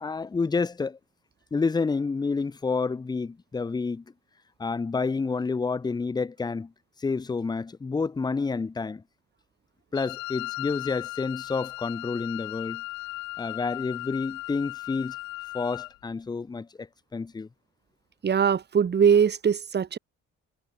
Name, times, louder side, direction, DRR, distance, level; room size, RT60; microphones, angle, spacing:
voice 1, 0.0-1.0 1.5-4.0 4.6-6.7 7.0-9.0 9.9-12.8 13.4-15.1 15.5-17.5, left 4 dB, 10° left, 0.5 m, -29 dB
Wind instrument woodwind instrument, 9.9-16.0, left 20 dB, 75° left, 1.4 m, -37 dB
voice 2, 18.2-20.0, right 7 dB, 25° right, 0.9 m, -21 dB
figure-of-eight pair, 45°, 39 cm